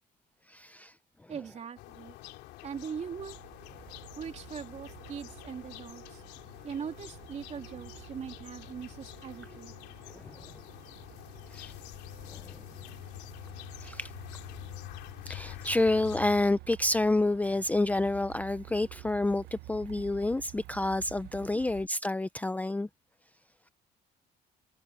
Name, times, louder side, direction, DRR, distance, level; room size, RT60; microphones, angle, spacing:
voice 1, 0.5-0.9 10.1-10.5 11.5-11.7 12.3-12.6 13.8-14.1 15.3-22.9, left 2 dB, 10° left, 0.5 m, -29 dB
voice 2, 1.3-2.2 2.6-3.4 4.2-6.2 6.6-9.7 21.5-21.6, right 7 dB, 40° right, 3.1 m, -41 dB
sound 1, 1.8-16.4, left 17 dB, 90° left, 3.0 m, -47 dB
Truck, 3.2-21.9, right 18 dB, 80° right, 1.0 m, -51 dB
cardioid pair, 110°, 17 cm